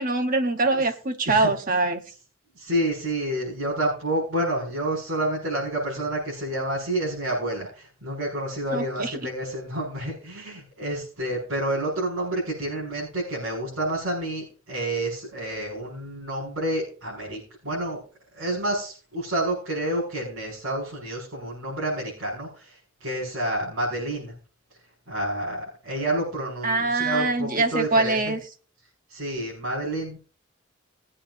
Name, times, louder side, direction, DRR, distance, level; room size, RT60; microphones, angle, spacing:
voice 1, 0.0-2.0 8.7-9.1 26.6-28.4, right 3 dB, 40° right, 1.1 m, -23 dB
voice 2, 1.2-1.8 2.5-18.0 18.3-24.3 25.1-28.3 29.1-30.2, right 1 dB, 70° right, 6.4 m, -29 dB
21.0 x 8.7 x 2.6 m
head